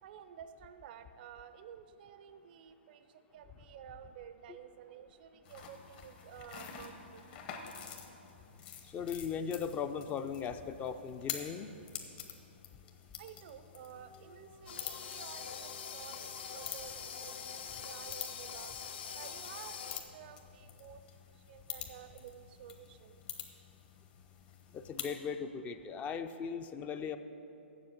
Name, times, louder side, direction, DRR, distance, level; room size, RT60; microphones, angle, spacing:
voice 1, 0.0-7.3 13.2-18.7 19.1-21.0 21.5-23.2, right 9 dB, 50° right, 11 dB, 0.4 m, -52 dB
sound 1, 5.4-25.2, left 8 dB, 50° left, 1.1 m, -48 dB
voice 2, 8.8-11.7 24.7-27.2, left 6 dB, 20° left, 10 dB, 0.4 m, -38 dB
Dog, 13.3-18.5, right 3 dB, 90° left, 1.5 m, -63 dB
sound 2, 14.7-20.0, left 7 dB, 65° left, 0.7 m, -44 dB
7.4 x 7.2 x 7.7 m, 2.9 s
hypercardioid pair, 130°, 6 cm